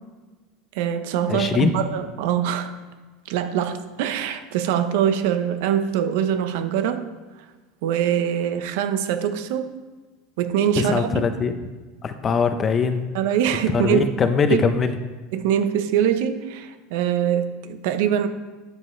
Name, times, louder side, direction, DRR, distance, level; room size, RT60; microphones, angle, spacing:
voice 1, 0.7-2.7 3.3-7.1 7.8-9.7 10.4-11.1 13.1-14.1 14.5-14.6 15.3-18.3, right 9 dB, 75° right, 9 dB, 0.9 m, -23 dB
voice 2, 1.3-1.7 10.7-11.6 12.0-13.1 13.7-15.0, left 5 dB, 25° left, 9 dB, 0.8 m, -22 dB
12.0 x 8.1 x 3.3 m, 1.3 s
supercardioid pair, 135°, 0 cm